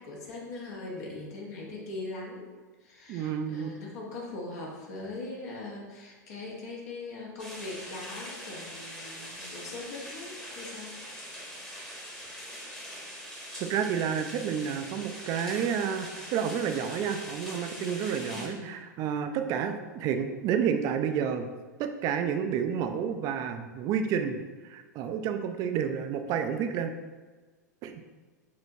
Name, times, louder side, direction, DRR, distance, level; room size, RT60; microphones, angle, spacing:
voice 1, 0.0-2.5 2.8-11.0 18.3-18.7, left 2 dB, 60° left, -3 dB, 1.2 m, -41 dB
voice 2, 3.1-3.7 13.6-21.5 21.8-24.4 24.6-26.9 27.8-28.0, right 7 dB, 40° right, 8 dB, 0.4 m, -30 dB
sound 1, 7.4-18.5, equal, 5° left, 1.0 m, -42 dB
6.4 x 2.9 x 2.7 m, 1.3 s
figure-of-eight pair, 90°, 10 cm